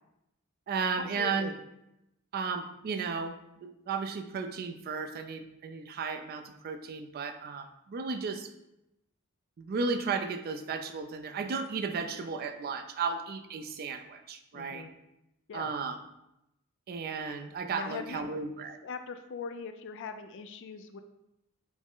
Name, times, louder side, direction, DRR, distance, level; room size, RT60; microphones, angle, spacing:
voice 1, 0.7-1.5 2.3-8.5 9.6-14.9 15.5-16.0 16.9-18.8, right 5 dB, 45° right, 7 dB, 0.3 m, -34 dB
voice 2, 1.2-1.6 14.5-14.9 15.5-15.7 17.7-18.3 18.8-21.0, left 5 dB, 55° left, 8 dB, 0.3 m, -41 dB
6.0 x 2.0 x 3.7 m, 0.87 s
head